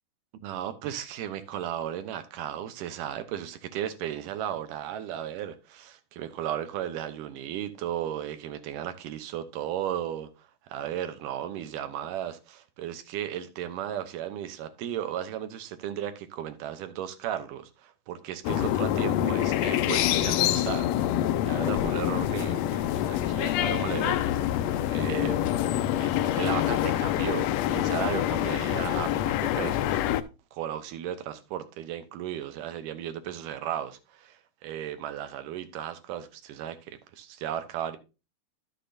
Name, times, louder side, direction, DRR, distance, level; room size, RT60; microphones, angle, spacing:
voice 1, 0.4-20.9 21.5-30.0 30.5-38.0, right 11 dB, 90° right, 2.5 m, -35 dB
sound 1, 18.4-30.2, left 12 dB, 85° left, 1.5 m, -26 dB
12.0 x 6.7 x 2.5 m
omnidirectional pair, 3.6 m